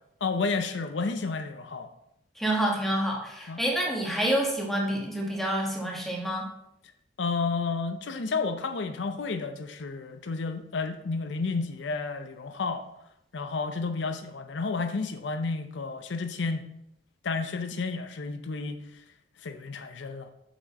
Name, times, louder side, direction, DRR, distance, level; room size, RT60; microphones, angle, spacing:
voice 1, 0.2-1.9 3.5-3.6 7.2-12.8 13.3-16.6 17.2-18.8 19.4-20.3, left 4 dB, 75° left, 8 dB, 0.6 m, -31 dB
voice 2, 2.4-6.5, right 1 dB, ahead, -2 dB, 1.2 m, -28 dB
6.4 x 6.2 x 4.1 m, 0.81 s
head